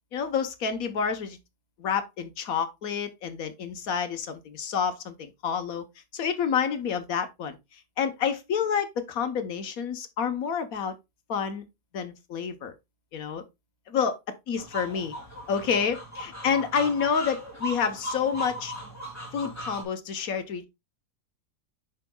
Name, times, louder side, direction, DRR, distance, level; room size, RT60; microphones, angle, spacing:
voice 1, 0.1-1.4 1.8-5.8 6.1-7.6 8.0-11.0 11.3-11.6 11.9-12.7 13.1-13.4 13.9-14.2 14.5-15.1 15.5-18.7 19.3-20.7, left 7 dB, 60° left, 1.3 m, -28 dB
sound 1, 14.6-19.8, equal, 10° left, 2.3 m, -38 dB
8.1 x 5.7 x 2.2 m
omnidirectional pair, 1.9 m